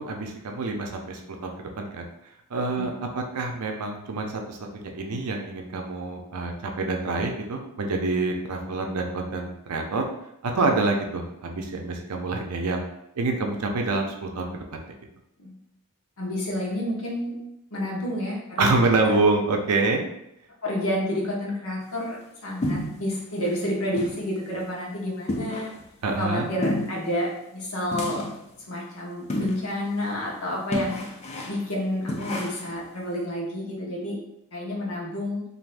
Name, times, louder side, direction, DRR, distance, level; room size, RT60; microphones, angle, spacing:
voice 1, 0.0-2.1 2.5-10.1 10.4-12.9 13.2-14.8 18.6-20.0 26.0-26.5, right 3 dB, 85° right, 2 dB, 0.5 m, -26 dB
voice 2, 16.2-17.4 17.7-18.8 20.6-25.7 26.2-28.2 28.7-31.0 31.5-34.2 34.5-35.4, left 1 dB, 65° left, -3 dB, 0.9 m, -29 dB
sound 1, 22.6-23.2 23.5-23.6 24.0-24.2 24.6-24.7 25.3-25.9 26.6-27.1 27.9-28.5 29.3-29.7 30.1-30.2 30.7-31.7 32.1-32.8, left 1 dB, 30° left, 0.3 m, -30 dB
3.3 x 2.6 x 2.5 m, 0.82 s
head